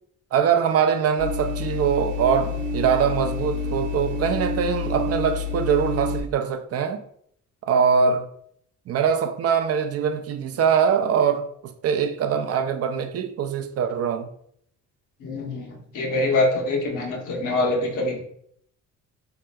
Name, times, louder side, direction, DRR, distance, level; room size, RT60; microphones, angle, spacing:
voice 1, 0.3-7.0 7.6-8.3 8.9-14.3, right 7 dB, 55° right, 0.4 m, -23 dB
sound 1, 1.2-6.2, left 3 dB, 85° right, 0.7 m, -28 dB
voice 2, 15.2-18.2, left 2 dB, 85° left, 0.9 m, -24 dB
3.3 x 2.9 x 2.2 m
cardioid pair, 90°, 30 cm